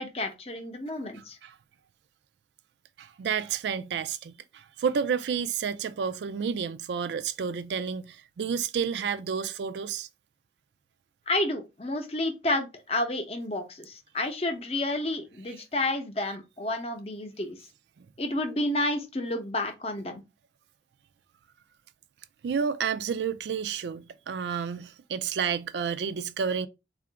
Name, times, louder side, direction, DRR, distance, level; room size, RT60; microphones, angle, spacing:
voice 1, 0.0-1.4 11.3-17.6 18.2-20.2, left 2 dB, 35° left, 0.6 m, -30 dB
voice 2, 1.1-1.5 3.0-10.1 22.4-26.7, right 6 dB, 75° right, 0.3 m, -30 dB
3.7 x 2.4 x 3.3 m
head